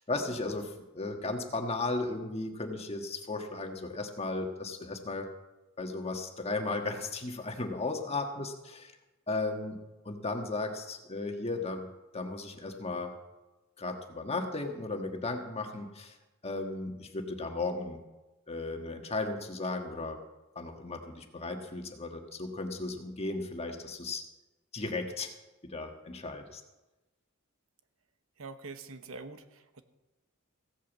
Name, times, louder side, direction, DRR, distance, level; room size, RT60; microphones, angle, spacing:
voice 1, 0.0-5.3 5.8-8.9 9.3-9.8 10.0-11.9 12.1-13.1 13.8-16.1 16.4-18.0 18.5-20.2 20.5-24.2 24.7-25.3 25.7-26.6, left 3 dB, 30° left, 4 dB, 1.5 m, -35 dB
voice 2, 28.4-29.8, right 3 dB, 65° right, 9 dB, 1.0 m, -45 dB
16.0 x 8.5 x 7.3 m, 1.1 s
head